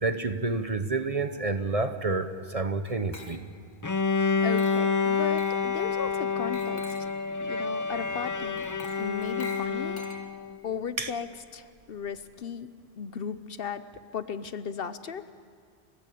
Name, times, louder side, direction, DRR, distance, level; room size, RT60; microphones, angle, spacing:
voice 1, 0.0-3.4 11.0-11.1, right 3 dB, 35° right, 9 dB, 1.0 m, -29 dB
Glass, 2.9-3.7 4.6-5.0 5.4-5.7 6.5-7.2 8.6-10.6, left 2 dB, 45° left, 1.7 m, -46 dB
Bowed string instrument, 3.8-10.6, left 5 dB, 25° left, 0.4 m, -28 dB
voice 2, 4.4-6.9 7.4-8.6 9.0-10.0 10.6-12.7 13.0-13.8 14.1-15.3, left 7 dB, 60° left, 13 dB, 0.9 m, -36 dB
30.0 x 16.0 x 8.6 m, 2.1 s
omnidirectional pair, 1.1 m